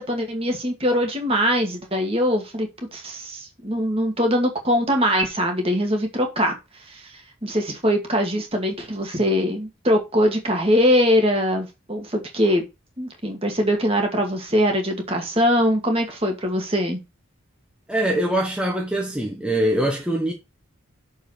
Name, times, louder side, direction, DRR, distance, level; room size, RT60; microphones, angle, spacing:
voice 1, 0.0-6.5 6.9-7.0 7.4-12.6 13.0-17.0, equal, 30° right, 2.2 m, -22 dB
voice 2, 17.9-20.3, right 1 dB, 5° right, 1.2 m, -23 dB
7.0 x 5.3 x 4.4 m
head